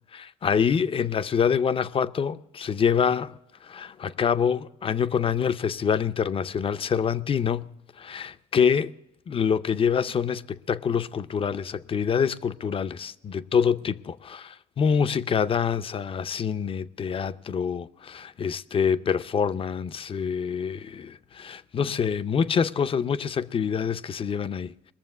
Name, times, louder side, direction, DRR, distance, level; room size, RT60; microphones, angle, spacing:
voice 1, 0.1-3.4 3.6-7.7 8.0-8.9 9.3-24.9, left 7 dB, 35° left, 0.5 m, -26 dB
21.0 x 7.1 x 8.2 m
cardioid pair, 110°, 17 cm